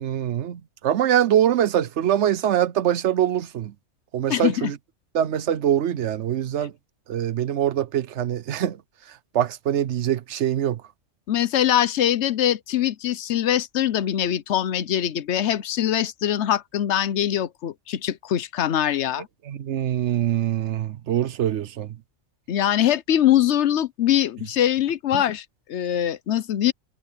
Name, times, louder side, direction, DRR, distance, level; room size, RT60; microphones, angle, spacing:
voice 1, 0.0-3.7 4.1-4.8 5.1-6.7 7.1-8.8 9.3-10.8 19.5-21.9, right 10 dB, 70° right, 1.0 m, -23 dB
voice 2, 4.3-4.7 11.3-19.3 22.5-26.7, left 11 dB, 65° left, 1.0 m, -23 dB
omnidirectional pair, 1.3 m